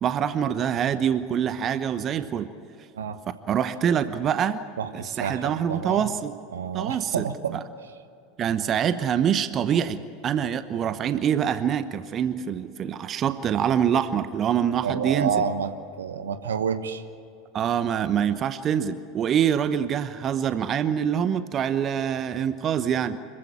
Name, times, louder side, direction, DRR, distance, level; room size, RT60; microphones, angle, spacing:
voice 1, 0.0-2.5 3.5-4.6 4.9-6.3 6.7-7.2 8.4-15.3 17.5-23.2, right 8 dB, 35° right, 12 dB, 1.0 m, -25 dB
voice 2, 4.8-6.1 6.5-7.9 14.8-15.7 16.0-17.0, right 7 dB, 75° right, 10 dB, 1.2 m, -29 dB
25.5 x 15.5 x 8.8 m, 2.6 s
figure-of-eight pair, 80°, 0 cm